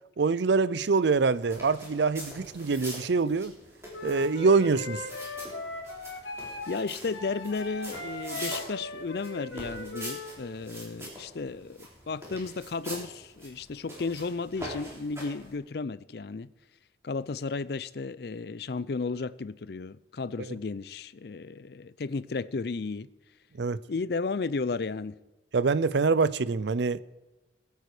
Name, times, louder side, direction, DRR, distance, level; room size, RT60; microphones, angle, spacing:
voice 1, 0.2-3.5 4.0-5.0 23.6-23.8 25.5-27.0, right 4 dB, 70° right, 0.5 m, -25 dB
sound 1, 1.3-15.5, right 1 dB, 15° right, 3.9 m, -44 dB
Wind instrument woodwind instrument, 3.9-10.4, left 2 dB, 80° left, 2.6 m, -39 dB
voice 2, 6.7-16.5 17.0-23.1 23.9-25.1, left 4 dB, 55° left, 0.5 m, -34 dB
21.0 x 9.3 x 4.9 m
head